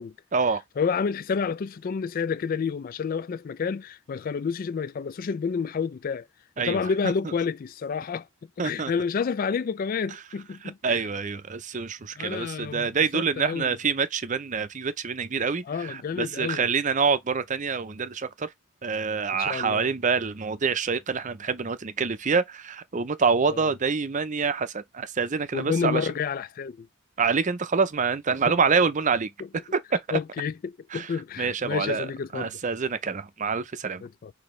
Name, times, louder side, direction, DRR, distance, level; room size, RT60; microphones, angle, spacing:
voice 1, 0.8-6.3 6.6-8.3 8.6-11.0 12.2-13.7 15.7-16.7 19.4-19.9 23.5-23.6 25.5-26.9 30.1-32.6 34.0-34.3, left 6 dB, 40° left, 0.3 m, -29 dB
voice 2, 6.6-7.1 8.6-8.9 10.8-18.5 18.8-26.1 27.2-29.3 29.9-30.2 30.9-31.1 31.4-32.1 32.3-34.0, right 5 dB, 35° right, 0.5 m, -26 dB
6.1 x 2.8 x 3.2 m
head